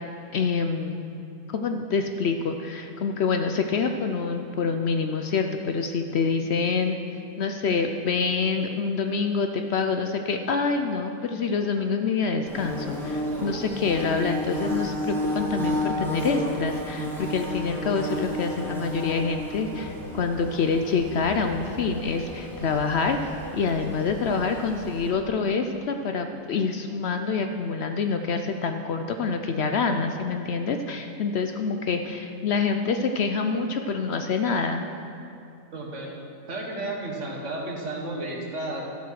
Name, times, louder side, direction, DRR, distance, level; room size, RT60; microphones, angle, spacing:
voice 1, 0.3-1.0 1.5-7.0 7.4-34.9, left 5 dB, 60° left, 6 dB, 0.8 m, -26 dB
Bird / Buzz, 12.5-25.1, left 1 dB, ahead, 1.7 m, -32 dB
voice 2, 35.7-36.1 36.5-38.8, right 2 dB, 60° right, -1 dB, 1.9 m, -32 dB
12.5 x 7.2 x 6.3 m, 2.7 s
omnidirectional pair, 1.4 m